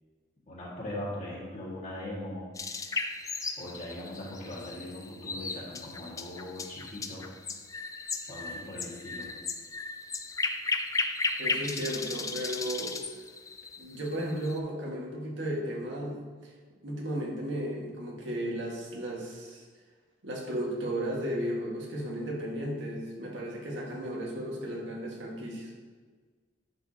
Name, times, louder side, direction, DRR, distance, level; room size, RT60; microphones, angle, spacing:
voice 1, 0.5-2.5 3.6-7.3 8.3-9.3, left 1 dB, 40° left, -6 dB, 1.9 m, -40 dB
sound 1, 2.5-14.6, left 4 dB, 20° left, 0.4 m, -35 dB
voice 2, 11.4-13.0 13.8-16.5 16.8-19.6 20.2-25.7, equal, 75° right, -3 dB, 1.7 m, -34 dB
10.5 x 4.9 x 2.9 m, 1.5 s
head